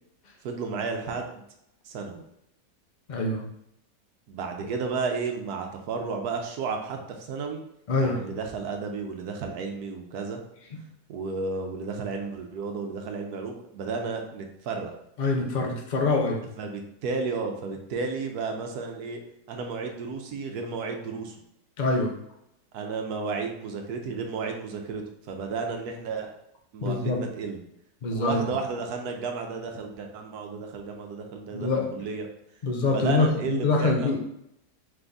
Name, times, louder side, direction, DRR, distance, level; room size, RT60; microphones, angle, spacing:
voice 1, 0.4-1.4 1.8-2.2 4.3-7.6 8.0-10.4 11.1-14.9 16.6-19.2 19.5-21.4 22.7-26.3 26.7-27.6 28.1-32.3 32.9-34.2, right 4 dB, 75° right, 3 dB, 1.2 m, -33 dB
voice 2, 3.1-3.5 7.9-8.2 15.2-16.4 21.8-22.1 26.8-27.2 28.0-28.4 31.5-31.9 32.6-34.2, left 3 dB, 70° left, 1 dB, 0.4 m, -25 dB
3.5 x 3.4 x 3.9 m, 0.81 s
omnidirectional pair, 1.7 m